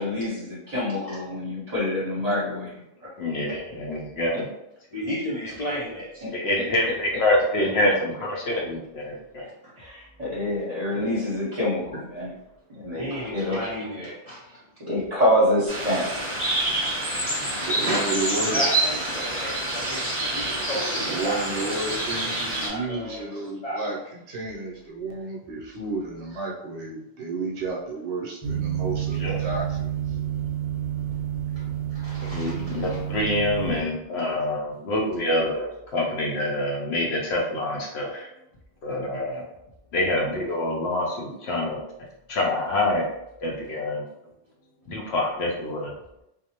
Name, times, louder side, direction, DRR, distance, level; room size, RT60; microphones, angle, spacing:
voice 1, 0.0-2.7 3.0-3.1 9.8-12.3 12.7-13.6 14.9-16.0, left 1 dB, 35° right, -7 dB, 0.9 m, -26 dB
voice 2, 3.2-4.5 5.6-5.7 6.3-9.5 29.2-29.4 32.3-38.3 38.8-39.4 39.9-41.8 42.3-43.0 43.4-44.0 44.9-45.9, left 1 dB, 70° left, -2 dB, 0.8 m, -26 dB
voice 3, 4.9-6.2 13.0-14.6 16.6-17.0 17.5-21.4 22.7-23.9 31.9-32.8, equal, 50° left, -7 dB, 0.4 m, -33 dB
sound 1, 15.7-22.7, right 1 dB, 10° left, 0.9 m, -27 dB
voice 4, 17.6-18.8 20.9-29.9, right 3 dB, 70° right, -1 dB, 0.8 m, -32 dB
sound 2, 28.4-33.8, right 10 dB, 55° right, 0.4 m, -29 dB
2.5 x 2.0 x 2.8 m, 0.84 s
omnidirectional pair, 1.2 m